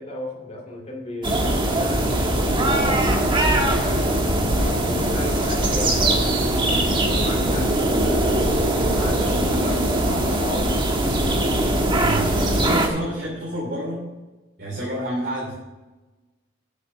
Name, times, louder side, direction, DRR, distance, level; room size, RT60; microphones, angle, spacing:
voice 1, 0.0-4.1 4.6-6.8 7.1-10.9 12.5-12.8, left 2 dB, 35° left, -1 dB, 2.2 m, -35 dB
sound 1, 1.2-12.9, right 1 dB, 25° right, 1.3 m, -21 dB
voice 2, 12.0-14.1 14.6-15.5, right 1 dB, 55° right, -4 dB, 2.9 m, -29 dB
8.4 x 7.6 x 5.7 m, 1.1 s
head